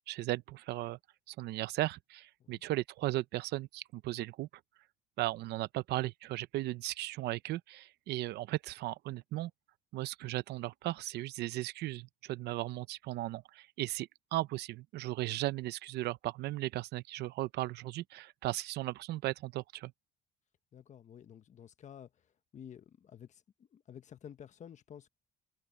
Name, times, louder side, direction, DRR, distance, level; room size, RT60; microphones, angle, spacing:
voice 1, 0.1-1.0 1.3-4.5 5.2-9.5 9.9-19.9, right 16 dB, 75° right, 0.7 m, -36 dB
voice 2, 20.7-22.1 22.5-25.1, left 9 dB, 45° left, 1.3 m, -51 dB
cardioid pair, 110°, 17 cm